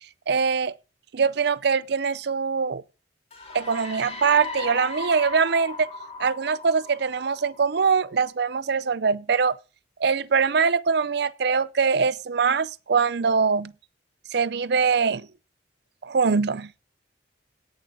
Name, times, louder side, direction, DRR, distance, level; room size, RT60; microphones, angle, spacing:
voice 1, 0.3-0.7 1.1-2.8 3.5-5.9 6.2-9.6 10.0-13.7 14.3-15.3 16.0-16.7, right 5 dB, 55° right, 0.5 m, -23 dB
sound 1, 3.3-7.9, left 3 dB, 30° left, 2.5 m, -37 dB
17.5 x 7.1 x 3.6 m
head